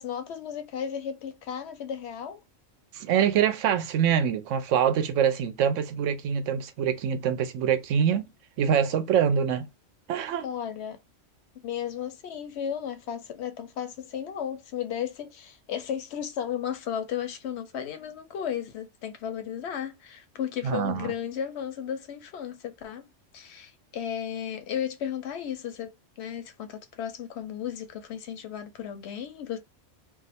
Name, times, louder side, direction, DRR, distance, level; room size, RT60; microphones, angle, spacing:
voice 1, 0.0-2.4 10.4-11.0 11.6-23.0 23.3-29.6, left 9 dB, 65° left, 0.8 m, -34 dB
voice 2, 2.9-8.3 8.6-9.7 10.1-10.5 20.6-21.1, right 8 dB, 80° right, 0.9 m, -25 dB
2.4 x 2.4 x 4.1 m
omnidirectional pair, 1.3 m